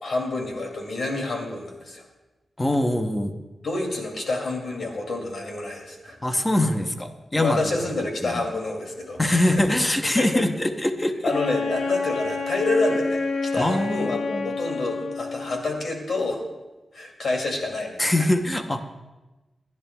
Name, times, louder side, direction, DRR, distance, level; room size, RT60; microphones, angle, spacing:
voice 1, 0.0-2.0 3.6-6.2 7.3-9.7 10.1-10.5 11.2-16.4 16.9-18.1, left 2 dB, 55° left, 1 dB, 2.4 m, -28 dB
voice 2, 2.6-3.3 6.2-7.6 8.2-8.4 9.2-11.3 13.5-14.5 18.0-18.8, left 1 dB, 15° left, 6 dB, 0.8 m, -23 dB
Wind instrument woodwind instrument, 11.3-15.7, left 4 dB, 75° left, 0.9 m, -29 dB
26.5 x 11.0 x 2.3 m, 1.1 s
wide cardioid pair, 180°, 0 cm